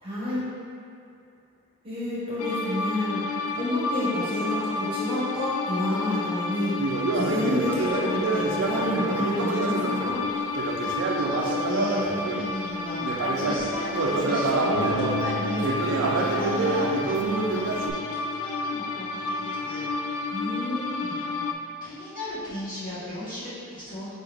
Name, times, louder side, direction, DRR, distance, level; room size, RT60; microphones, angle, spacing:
voice 1, 0.0-0.4 1.8-10.2 20.3-21.1, left 1 dB, 25° right, -10 dB, 1.1 m, -29 dB
sound 1, 2.4-21.5, left 3 dB, 85° left, 0.3 m, -31 dB
Conversation, 6.8-12.5 13.0-17.9, right 3 dB, 55° right, 0.4 m, -27 dB
voice 2, 10.8-19.9 21.0-24.1, equal, 40° left, -11 dB, 1.5 m, -37 dB
Acoustic guitar, 14.7-19.9, right 1 dB, 20° left, 1.2 m, -37 dB
4.5 x 3.4 x 3.4 m, 2.5 s
head